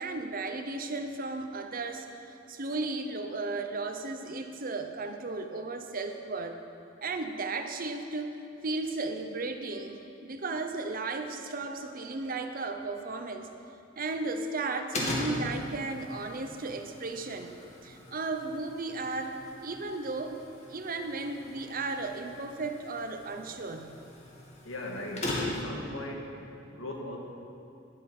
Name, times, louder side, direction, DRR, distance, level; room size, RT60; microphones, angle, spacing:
voice 1, 0.0-2.1 2.5-6.6 7.0-8.3 8.6-13.5 14.0-17.6 17.8-20.4 20.7-24.0, right 3 dB, 45° right, 6 dB, 0.8 m, -35 dB
sound 1, 14.9-25.8, left 1 dB, 35° left, 2.1 m, -39 dB
voice 2, 24.6-26.3 26.7-27.2, left 1 dB, 85° left, 0 dB, 2.0 m, -39 dB
12.5 x 11.0 x 5.5 m, 2.8 s
head